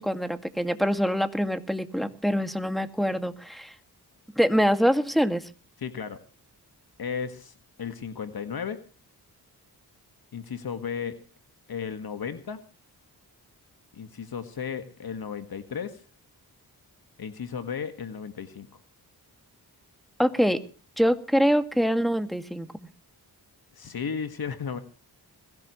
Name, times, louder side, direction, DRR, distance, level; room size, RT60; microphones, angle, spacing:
voice 1, 0.0-3.7 4.4-5.4 20.2-20.6 21.0-22.7, equal, ahead, 10 dB, 2.1 m, -24 dB
voice 2, 5.8-6.2 7.0-8.8 10.3-11.2 11.7-12.6 13.9-16.0 17.2-18.7 23.7-24.8, left 6 dB, 70° left, 9 dB, 1.8 m, -34 dB
21.5 x 16.5 x 3.2 m, 0.36 s
cardioid pair, 75°, 39 cm